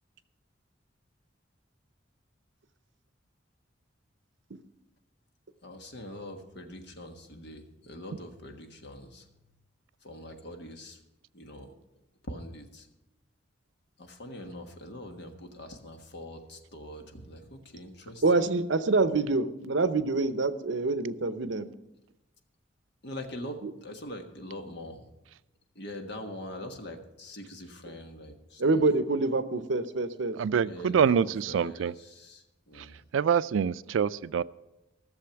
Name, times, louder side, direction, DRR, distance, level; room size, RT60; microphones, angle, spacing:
voice 1, 5.6-9.2 10.0-11.0 11.3-11.7 12.3-12.8 14.0-18.2 23.0-25.0 25.8-28.6 30.7-33.0, left 1 dB, 60° left, 1.4 m, -43 dB
voice 2, 18.2-21.7 23.6-23.7 27.9-28.0 28.6-30.4, right 3 dB, 70° right, 0.7 m, -26 dB
voice 3, 30.3-31.9 32.8-32.9 33.1-34.4, right 7 dB, 90° right, 0.4 m, -26 dB
15.0 x 7.0 x 5.8 m
head